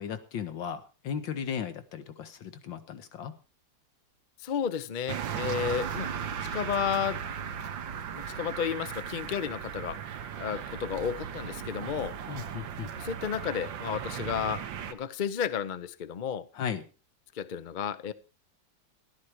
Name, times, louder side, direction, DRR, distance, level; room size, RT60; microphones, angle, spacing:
voice 1, 0.0-3.3 12.3-12.9 16.6-16.8, left 7 dB, 85° left, 10 dB, 2.0 m, -36 dB
voice 2, 4.4-6.1 6.4-7.2 8.1-10.0 10.4-12.2 12.9-16.5 17.3-18.1, left 8 dB, 70° left, 13 dB, 0.4 m, -32 dB
sound 1, 5.1-14.9, right 8 dB, 85° right, 1.8 m, -37 dB
13.5 x 11.5 x 4.7 m, 0.33 s
omnidirectional pair, 2.0 m